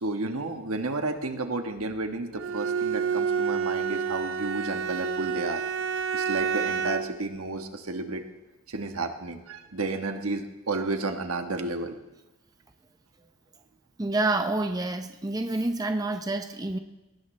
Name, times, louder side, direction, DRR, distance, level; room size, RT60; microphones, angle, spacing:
voice 1, 0.0-5.6 6.1-8.2 8.7-11.9, right 3 dB, 90° right, 6 dB, 1.3 m, -32 dB
Bowed string instrument, 2.4-7.2, right 6 dB, 65° right, 0.6 m, -29 dB
voice 2, 14.0-16.8, right 2 dB, 15° right, 7 dB, 0.6 m, -28 dB
21.5 x 18.5 x 3.3 m, 1.1 s
head